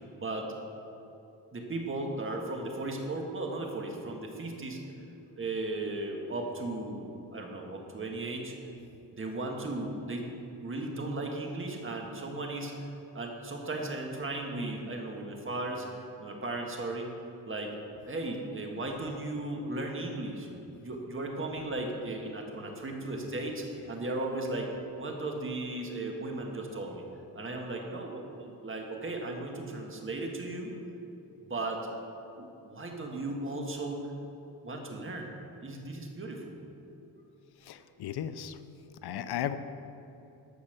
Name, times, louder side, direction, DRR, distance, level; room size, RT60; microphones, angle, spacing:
voice 1, 0.2-0.5 1.5-4.8 5.3-8.5 9.1-10.3 10.6-12.9 13.1-15.9 16.2-17.1 17.4-17.7 18.1-20.5 20.8-27.0 27.3-30.7 31.5-31.9 32.4-34.1 34.6-35.3 35.6-36.5, right 2 dB, 30° right, 1 dB, 1.7 m, -36 dB
voice 2, 37.7-38.6 39.0-39.6, left 10 dB, 75° left, 11 dB, 0.6 m, -35 dB
13.5 x 5.6 x 6.6 m, 2.8 s
cardioid pair, 115°, 39 cm